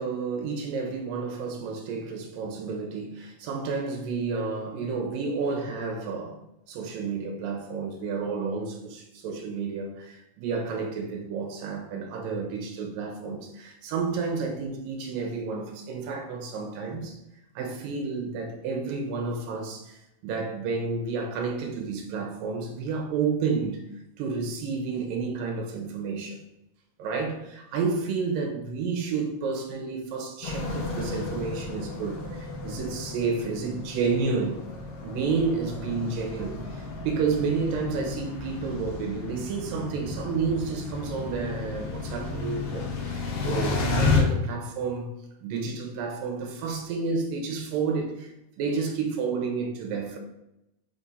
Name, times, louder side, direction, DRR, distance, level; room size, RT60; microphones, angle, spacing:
voice 1, 0.0-6.4 6.7-17.2 17.6-23.8 24.2-26.4 27.0-34.6 35.0-45.1 45.4-50.2, right 4 dB, 75° right, 2.3 m, -30 dB
sound 1, 30.4-44.2, left 3 dB, 65° left, 1.8 m, -32 dB
7.1 x 3.5 x 4.1 m
omnidirectional pair, 4.5 m